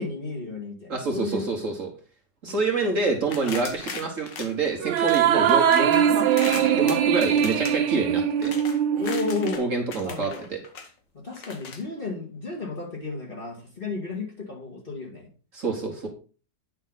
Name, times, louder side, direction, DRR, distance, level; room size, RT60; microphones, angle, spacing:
voice 1, 0.0-1.5 2.5-2.6 9.0-9.7 10.0-10.5 11.1-15.3, left 4 dB, 30° left, -2 dB, 2.2 m, -32 dB
voice 2, 0.9-1.9 2.4-8.5 9.6-10.6 15.5-16.1, right 4 dB, 45° right, 1 dB, 1.6 m, -27 dB
sound 1, 3.3-5.2 5.5-9.6 9.9-10.9 11.3-11.8, left 5 dB, 75° left, 1.9 m, -38 dB
sound 2, 4.8-9.6, right 9 dB, 80° right, 1.4 m, -22 dB
9.4 x 5.7 x 4.0 m, 0.37 s
omnidirectional pair, 1.9 m